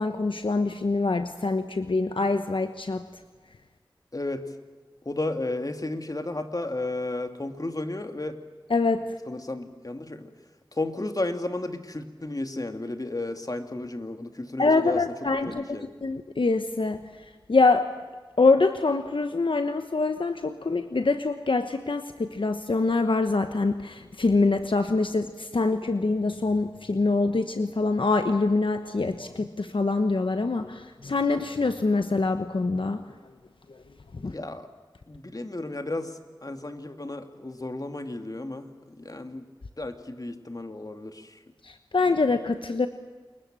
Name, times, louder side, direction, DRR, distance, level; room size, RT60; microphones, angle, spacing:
voice 1, 0.0-3.0 8.7-9.2 14.6-17.9 18.4-33.0 33.7-33.8 34.1-34.3 41.6-42.9, left 3 dB, 75° left, 8 dB, 1.1 m, -25 dB
voice 2, 4.1-4.5 5.0-8.4 9.3-10.3 10.7-15.0 15.4-15.9 34.3-34.7 35.1-39.5 39.8-41.4, left 2 dB, 45° left, 6 dB, 2.4 m, -33 dB
28.0 x 22.5 x 7.6 m, 1.4 s
wide cardioid pair, 40°, 9 cm